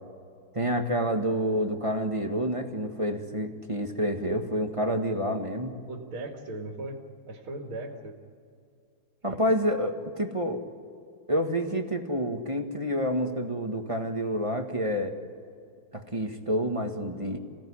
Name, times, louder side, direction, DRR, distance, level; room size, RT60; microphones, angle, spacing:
voice 1, 0.5-5.7 9.2-10.6 11.3-15.1 15.9-17.4, equal, 15° right, 4 dB, 1.5 m, -28 dB
voice 2, 5.9-7.0 7.3-8.2 9.3-9.4, right 2 dB, 70° right, 1 dB, 3.0 m, -38 dB
27.0 x 17.5 x 9.9 m, 2.4 s
omnidirectional pair, 2.4 m